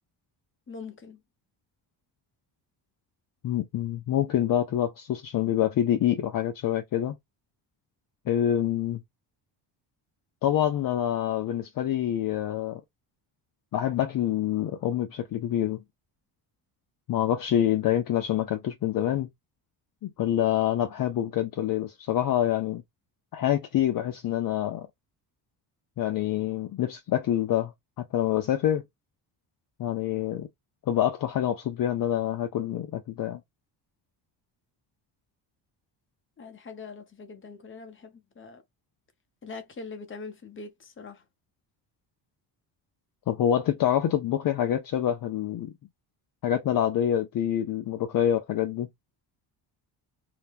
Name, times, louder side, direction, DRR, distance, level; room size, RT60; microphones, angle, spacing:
voice 1, 0.7-1.2 36.4-38.6 39.4-41.2, left 4 dB, 30° left, 0.9 m, -42 dB
voice 2, 3.4-7.2 8.3-9.0 10.4-12.8 13.7-15.8 17.1-19.3 20.0-22.8 23.3-24.9 26.0-28.8 29.8-30.5 30.9-33.4 43.3-45.7 46.4-48.9, left 11 dB, 50° left, 0.6 m, -26 dB
2.9 x 2.2 x 3.3 m
cardioid pair, 110°, 44 cm